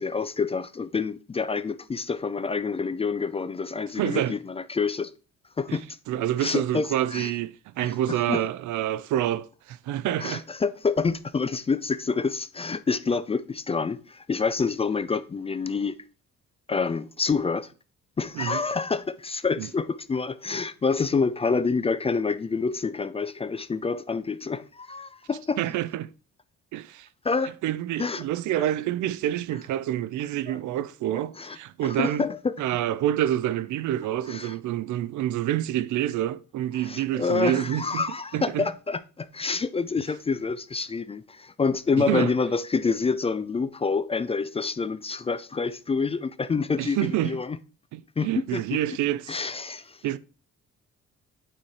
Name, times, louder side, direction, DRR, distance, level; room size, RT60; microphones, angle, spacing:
voice 1, 0.0-5.1 5.6-5.9 6.4-7.3 7.8-8.4 10.2-16.0 16.7-17.7 18.2-25.6 27.2-27.5 28.0-28.2 30.5-30.6 31.4-31.6 31.8-32.6 34.3-34.5 36.8-47.6 48.2-48.8 49.3-50.0, left 4 dB, 20° left, 0.3 m, -27 dB
voice 2, 4.0-4.3 5.7-5.8 6.1-10.4 18.4-18.6 19.6-19.7 25.6-26.1 26.7-27.1 27.6-32.2 32.6-38.0 38.3-38.6 42.0-42.3 46.8-47.4 47.9-49.4 50.0-50.2, right 12 dB, 75° right, 0.5 m, -27 dB
8.8 x 3.2 x 4.1 m
cardioid pair, 90°, 30 cm